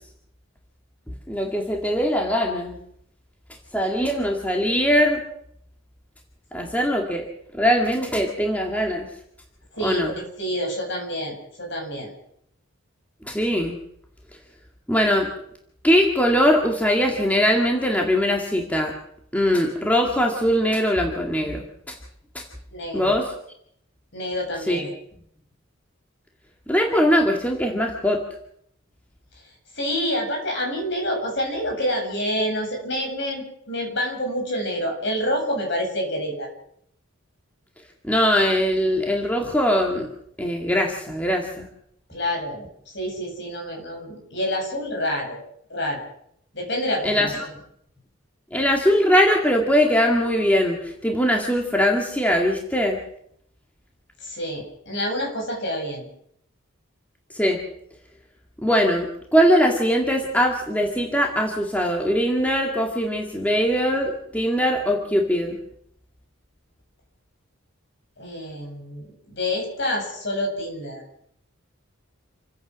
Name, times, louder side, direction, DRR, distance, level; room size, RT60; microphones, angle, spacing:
voice 1, 1.3-2.8 3.7-5.2 6.5-7.3 7.5-9.1 9.8-10.1 13.2-13.8 14.9-15.3 15.8-18.9 19.3-21.6 21.9-22.0 22.3-22.4 22.9-23.3 24.7-24.8 26.7-28.2 38.1-40.1 40.4-41.7 47.0-47.3 48.5-53.0 57.3-57.6 58.6-65.6, equal, 5° left, 1 dB, 2.1 m, -21 dB
voice 2, 9.7-12.1 22.7-23.1 24.1-24.9 29.7-36.5 42.1-42.6 42.9-45.4 45.7-46.0 46.5-47.5 54.2-56.1 68.2-71.0, equal, 55° left, 1 dB, 7.9 m, -28 dB
28.0 x 16.0 x 6.3 m, 0.72 s
head